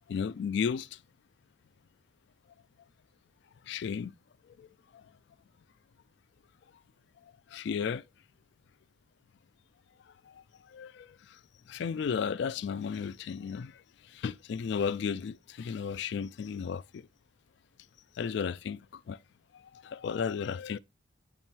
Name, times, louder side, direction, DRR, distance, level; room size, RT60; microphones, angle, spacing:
voice 1, 0.1-0.9 3.7-4.1 4.6-4.7 7.5-8.0 10.7-11.1 11.7-13.7 14.1-17.0 18.2-18.8 19.1-19.2 19.8-20.8, left 6 dB, 60° left, 0.3 m, -33 dB
8.8 x 3.3 x 4.4 m
head